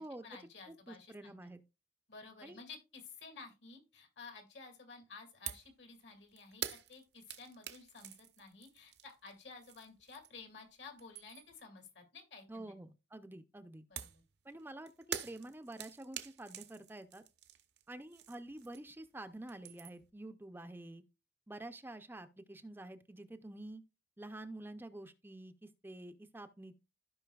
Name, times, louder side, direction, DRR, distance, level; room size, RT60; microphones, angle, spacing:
voice 1, 0.0-1.5 2.1-12.8 13.9-14.2, left 4 dB, 75° left, 2.2 m, -53 dB
voice 2, 0.7-1.6 2.4-2.6 12.5-13.9 14.4-17.2 17.9-21.0 21.5-23.8 24.2-26.7, right 1 dB, 10° right, 0.5 m, -48 dB
sound 1, 5.5-5.7 6.0-10.5 10.8-11.6 14.0-19.1 19.3-20.1, right 9 dB, 65° right, 0.8 m, -46 dB
15.0 x 5.3 x 2.3 m
head